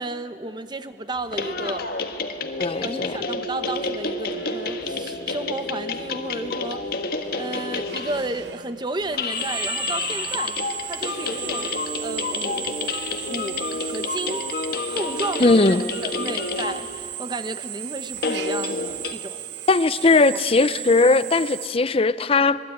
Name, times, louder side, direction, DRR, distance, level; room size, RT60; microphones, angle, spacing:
voice 1, 0.0-1.9 2.5-7.0 7.4-11.7 12.0-12.8 13.3-14.4 14.9-19.4 20.3-20.4, right 2 dB, 25° right, 0.9 m, -33 dB
sound 1, 1.2-8.4 9.0-17.1 18.2-19.1, left 4 dB, 55° left, 1.5 m, -29 dB
voice 2, 2.6-3.2 15.4-15.8 19.7-22.6, left 3 dB, 30° left, 0.6 m, -19 dB
Drill, 4.3-21.7, right 12 dB, 70° right, 0.6 m, -36 dB
25.5 x 20.5 x 9.5 m
head